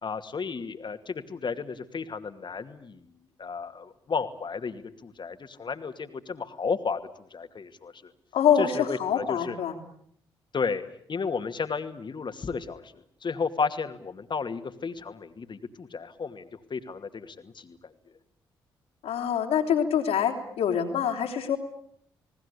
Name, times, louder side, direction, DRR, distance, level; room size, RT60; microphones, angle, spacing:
voice 1, 0.0-3.0 3.4-8.1 8.6-9.6 10.5-10.8 11.1-17.9, left 5 dB, 45° left, 8 dB, 2.5 m, -33 dB
voice 2, 8.3-9.8 19.0-21.6, left 8 dB, 70° left, 3 dB, 3.7 m, -25 dB
29.5 x 19.5 x 8.5 m, 0.67 s
hypercardioid pair, 45°, 11 cm